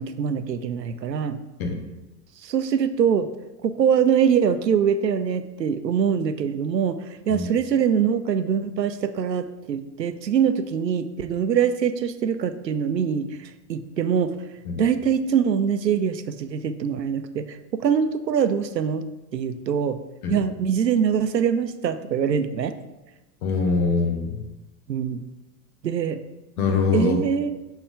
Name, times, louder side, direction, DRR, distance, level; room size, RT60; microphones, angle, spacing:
voice 1, 0.0-1.4 2.4-3.3 3.6-14.3 14.8-19.0 19.3-20.0 20.3-22.7 24.9-25.2 25.8-26.2 26.9-27.6, right 7 dB, 90° right, 11 dB, 0.6 m, -23 dB
voice 2, 23.4-24.4 26.6-27.2, left 4 dB, 60° left, 3 dB, 1.4 m, -23 dB
6.1 x 4.4 x 3.6 m, 1.0 s
figure-of-eight pair, 90°, 48 cm